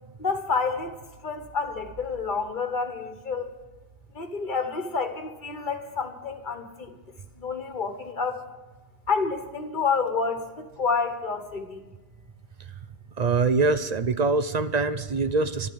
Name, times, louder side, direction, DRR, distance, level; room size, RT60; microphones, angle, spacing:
voice 1, 0.2-1.0 1.2-3.5 4.1-6.9 7.4-8.4 9.1-11.8, left 5 dB, 40° left, 6 dB, 1.5 m, -29 dB
voice 2, 13.2-15.7, right 3 dB, 45° right, 11 dB, 0.6 m, -24 dB
12.5 x 12.0 x 7.8 m, 1.1 s
omnidirectional pair, 1.2 m